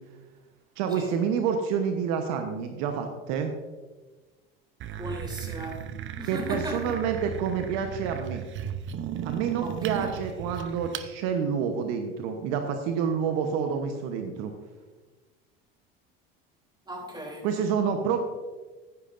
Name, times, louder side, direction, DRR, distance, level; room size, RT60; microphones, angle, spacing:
voice 1, 0.8-3.5 6.3-8.4 9.2-14.5 17.4-18.2, right 6 dB, 65° right, 5 dB, 1.1 m, -28 dB
sound 1, 4.8-11.1, right 10 dB, 40° right, 0.8 m, -35 dB
voice 2, 5.0-5.8 6.2-6.9 9.6-10.1 16.9-17.5, equal, 15° right, 0 dB, 3.3 m, -37 dB
14.5 x 10.5 x 2.6 m, 1.3 s
hypercardioid pair, 80°, 30 cm